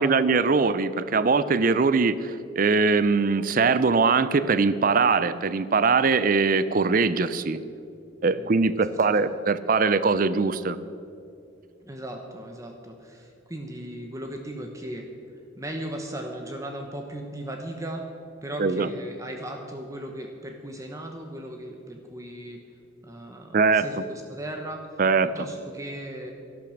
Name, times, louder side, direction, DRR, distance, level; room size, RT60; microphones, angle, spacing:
voice 1, 0.0-7.6 8.2-10.8 18.6-18.9 23.5-23.9 25.0-25.3, right 4 dB, 45° right, 15 dB, 0.5 m, -22 dB
voice 2, 8.9-9.2 11.8-15.1 15.6-18.1 18.4-22.6 23.0-25.0 25.3-26.3, right 1 dB, 15° right, 3 dB, 1.0 m, -37 dB
12.0 x 12.0 x 6.4 m, 2.6 s
head